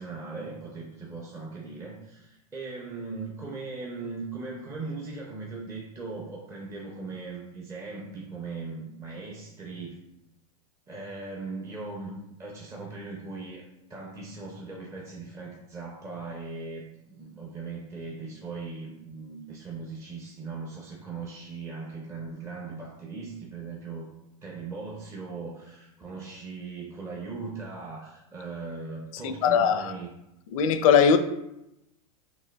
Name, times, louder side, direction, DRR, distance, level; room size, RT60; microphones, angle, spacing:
voice 1, 0.0-10.0 10.9-24.1 24.4-30.1, right 4 dB, 15° right, -2 dB, 0.5 m, -39 dB
voice 2, 29.2-29.9 30.5-31.2, left 7 dB, 65° left, 10 dB, 0.5 m, -20 dB
6.0 x 2.5 x 2.2 m, 0.87 s
supercardioid pair, 135°, 19 cm